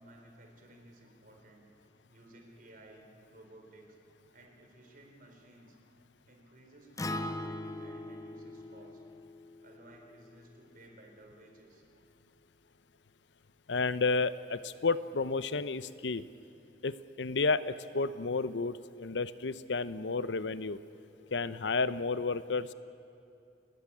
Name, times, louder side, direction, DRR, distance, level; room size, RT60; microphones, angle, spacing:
voice 1, 0.0-1.7 2.1-4.0 4.3-5.8 6.3-9.0 9.6-11.8, right 1 dB, 50° right, 2 dB, 4.1 m, -56 dB
Acoustic guitar, 7.0-11.2, left 1 dB, 20° left, 0.6 m, -41 dB
voice 2, 13.7-16.3 16.8-20.8 21.3-22.7, left 4 dB, 85° left, 15 dB, 0.7 m, -31 dB
28.5 x 13.5 x 9.9 m, 2.6 s
head